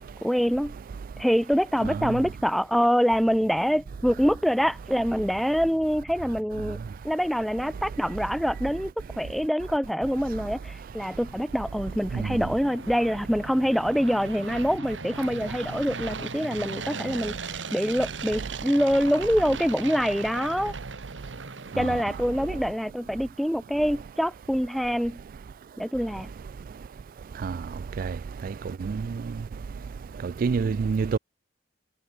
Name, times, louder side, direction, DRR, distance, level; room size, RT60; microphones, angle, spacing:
voice 1, 0.2-0.7 1.2-6.8 7.0-20.7 21.8-25.2 25.8-26.3, equal, ahead, 2.1 m, -25 dB
sound 1, 3.5-9.5, equal, 25° right, 4.0 m, -51 dB
sound 2, 10.6-22.6, right 4 dB, 90° right, 2.0 m, -38 dB
voice 2, 30.2-31.2, right 5 dB, 50° right, 0.3 m, -27 dB
head